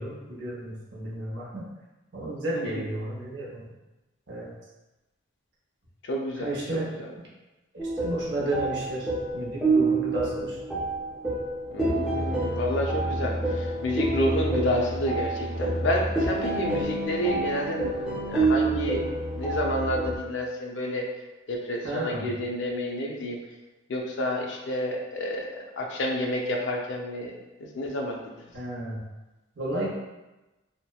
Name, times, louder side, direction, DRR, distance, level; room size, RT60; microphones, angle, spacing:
voice 1, 0.0-1.7 2.1-3.6 4.3-4.5 6.3-6.9 7.7-9.1 9.3-10.6 21.8-22.3 28.5-29.0 29.6-30.0, right 1 dB, 60° right, -5 dB, 0.7 m, -32 dB
voice 2, 6.0-7.1 11.7-19.0 19.3-21.1 21.5-23.4 23.9-28.2, left 1 dB, 65° left, 0 dB, 0.4 m, -30 dB
sound 1, 7.8-20.2, right 2 dB, 5° right, 0.4 m, -28 dB
2.8 x 2.1 x 2.2 m, 1.1 s
head